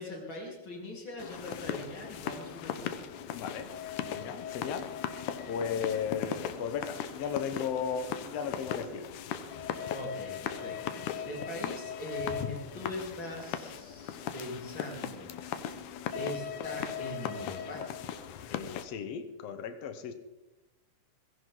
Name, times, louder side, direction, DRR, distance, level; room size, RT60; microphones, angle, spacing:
voice 1, 0.0-3.0 9.9-15.8 16.1-17.8, left 1 dB, 35° left, -2 dB, 4.3 m, -41 dB
sound 1, 1.2-18.9, left 9 dB, 80° left, 2.4 m, -38 dB
voice 2, 3.3-3.7 4.1-4.9 5.5-9.1 18.5-20.1, left 7 dB, 60° left, 8 dB, 2.1 m, -35 dB
18.5 x 16.5 x 3.9 m, 1.0 s
omnidirectional pair, 3.6 m